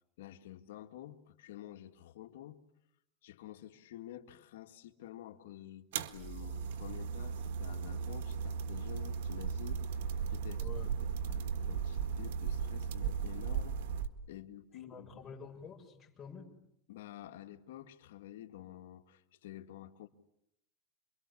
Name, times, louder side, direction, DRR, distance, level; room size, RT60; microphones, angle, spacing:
voice 1, 0.2-2.6 3.2-13.8 14.3-15.2 16.9-20.1, left 12 dB, 85° left, 2.0 m, -50 dB
sound 1, 5.9-14.1, right 6 dB, 80° right, 1.7 m, -36 dB
voice 2, 10.6-10.9 14.7-16.5, left 5 dB, 25° left, 6.9 m, -49 dB
27.5 x 23.5 x 8.6 m
supercardioid pair, 135°, 0 cm